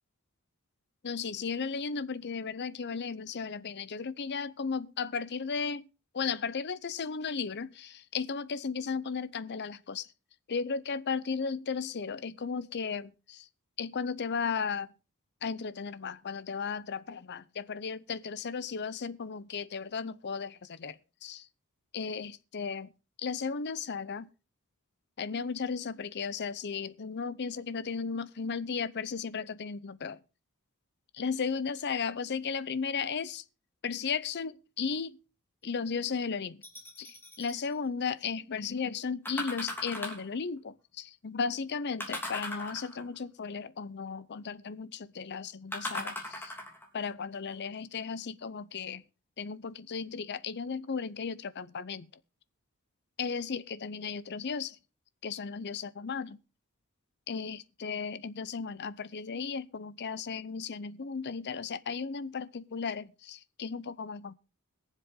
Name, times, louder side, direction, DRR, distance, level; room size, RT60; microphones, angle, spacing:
voice 1, 1.0-5.9 6.1-10.1 10.5-13.5 13.8-14.9 15.4-21.5 21.9-22.9 23.2-24.3 25.2-30.2 31.1-33.4 33.8-35.2 35.6-36.6 37.0-46.5 46.9-49.0 49.4-52.1 53.2-54.8 55.2-56.4 57.3-64.3, left 5 dB, 50° left, 0.6 m, -35 dB
sound 1, 36.6-37.6 39.3-40.3 42.0-43.2 45.7-46.9 47.5-47.6, left 1 dB, 10° left, 3.1 m, -38 dB
22.0 x 7.5 x 3.7 m
head